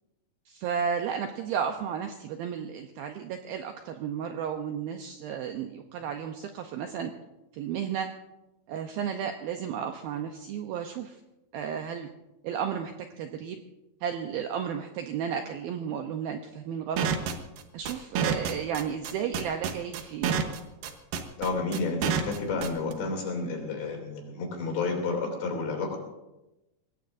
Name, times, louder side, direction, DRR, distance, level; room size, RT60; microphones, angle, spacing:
voice 1, 0.5-7.1 7.5-8.1 8.7-11.2 11.5-12.1 12.4-13.6 14.0-17.1 17.7-20.4, right 8 dB, 85° right, 5 dB, 2.2 m, -33 dB
sound 1, 17.0-22.9, right 7 dB, 70° right, 2.4 m, -28 dB
voice 2, 21.4-26.0, left 3 dB, 70° left, 1 dB, 5.0 m, -31 dB
23.0 x 18.0 x 2.6 m, 0.97 s
omnidirectional pair, 5.2 m